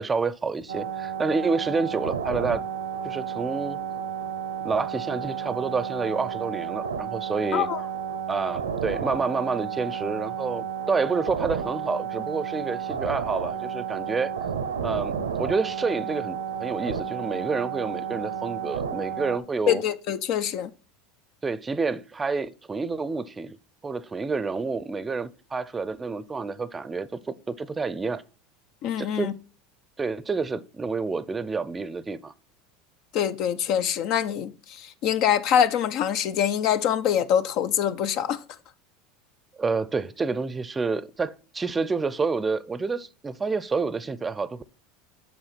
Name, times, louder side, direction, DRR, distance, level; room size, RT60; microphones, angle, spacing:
voice 1, 0.0-2.6 3.0-3.8 4.6-7.7 8.3-14.3 14.8-19.8 21.4-23.6 23.8-28.2 29.0-29.3 30.0-32.3 39.5-44.6, right 4 dB, 20° right, 0.6 m, -28 dB
sound 1, 0.7-19.4, right 8 dB, 85° right, 0.8 m, -32 dB
voice 2, 19.7-20.7 28.8-29.3 33.1-38.4, left 9 dB, 55° left, 0.6 m, -24 dB
7.9 x 5.4 x 4.2 m
hypercardioid pair, 80°, 0 cm